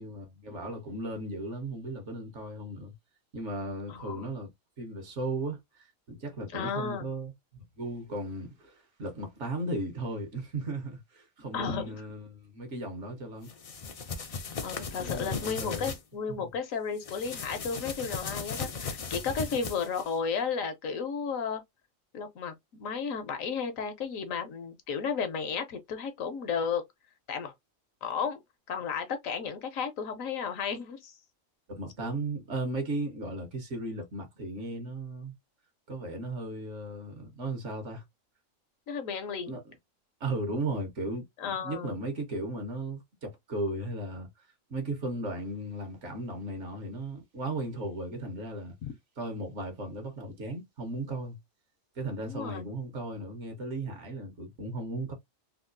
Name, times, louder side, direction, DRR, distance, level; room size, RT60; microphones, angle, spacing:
voice 1, 0.0-2.9 3.3-4.5 4.8-13.5 15.0-15.9 16.3-16.5 31.7-35.3 35.9-38.0 39.5-39.6 40.2-44.3 44.7-48.7 49.2-51.4 52.0-55.1, right 2 dB, 65° right, 1.4 m, -36 dB
voice 2, 3.9-4.2 6.5-7.1 11.5-12.0 14.6-21.6 22.1-26.8 27.3-27.5 28.0-28.4 28.7-31.1 32.0-32.1 38.9-39.6 41.4-42.0 48.8-48.9 52.2-52.7, left 6 dB, 80° left, 1.2 m, -33 dB
sound 1, 13.5-16.0 17.0-20.1, left 5 dB, 65° left, 0.3 m, -37 dB
3.6 x 2.3 x 2.5 m
omnidirectional pair, 1.4 m